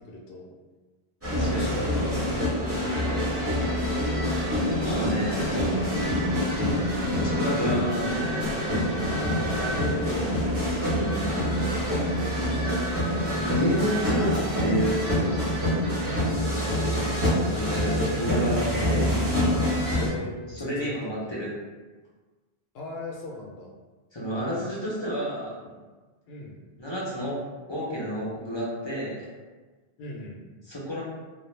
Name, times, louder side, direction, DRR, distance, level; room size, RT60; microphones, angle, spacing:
voice 1, 0.1-0.5 1.4-2.5 2.9-3.0 5.1-5.9 6.3-6.6 9.6-10.7 12.1-12.9 16.0-16.4 20.0-21.3 22.7-23.7 26.3-26.6 30.0-30.4, left 2 dB, 75° left, -1 dB, 0.8 m, -39 dB
sound 1, 1.2-20.1, equal, 15° right, 0.6 m, -26 dB
voice 2, 1.3-1.8 4.7-5.5 7.2-8.6 10.8-11.3 13.3-15.3 17.3-19.3 20.6-21.5 24.1-25.6 26.8-27.4 27.7-29.3 30.7-31.0, equal, 35° left, -6 dB, 0.5 m, -30 dB
2.3 x 2.0 x 3.1 m, 1.3 s
omnidirectional pair, 1.1 m